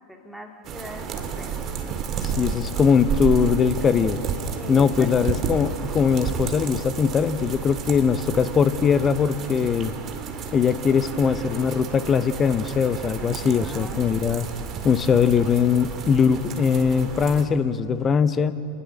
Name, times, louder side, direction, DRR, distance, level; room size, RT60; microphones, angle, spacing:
voice 1, 0.1-1.6 4.6-5.3 13.4-14.1, equal, ahead, 2 dB, 2.4 m, -41 dB
sound 1, 0.6-17.5, right 6 dB, 30° right, 2.1 m, -31 dB
voice 2, 2.2-4.2 4.7-9.9 10.5-14.5 14.8-18.5, left 6 dB, 20° left, 14 dB, 0.9 m, -21 dB
29.5 x 20.0 x 6.6 m, 2.7 s
figure-of-eight pair, 90°, 0 cm